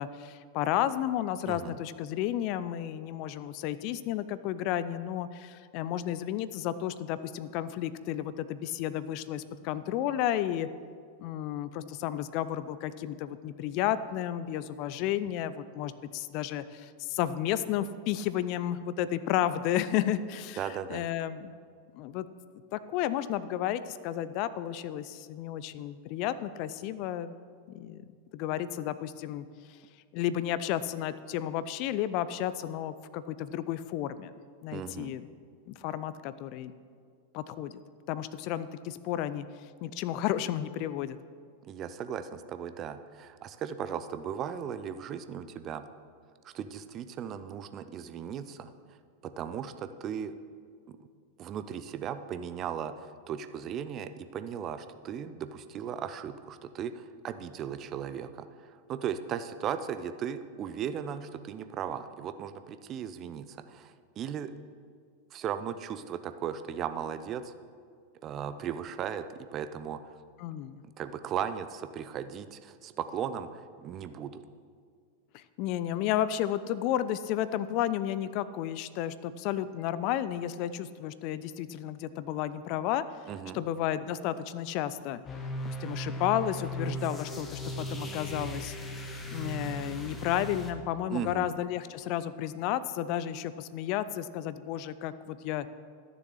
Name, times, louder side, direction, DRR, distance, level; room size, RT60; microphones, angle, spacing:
voice 1, 0.0-10.7 11.2-20.6 20.9-21.5 21.9-22.3 22.7-27.3 27.7-28.0 28.3-29.4 30.1-34.3 34.6-35.3 35.7-36.7 37.3-37.7 38.1-39.5 39.8-41.2 70.4-70.8 75.3-83.0 83.5-85.2 85.6-88.8 89.3-95.7, left 11 dB, 45° left, 14 dB, 0.4 m, -32 dB
voice 2, 1.5-1.8 20.6-21.0 34.7-35.2 41.7-45.8 46.4-48.7 49.2-50.3 50.9-51.0 51.4-58.5 58.9-64.5 65.3-67.5 68.2-70.0 71.0-74.4 83.3-83.6 91.1-91.5, right 8 dB, 30° right, 11 dB, 0.6 m, -37 dB
sound 1, 85.3-90.7, equal, 15° left, 1.2 m, -37 dB
13.0 x 6.9 x 6.4 m, 2.1 s
figure-of-eight pair, 90°, 0 cm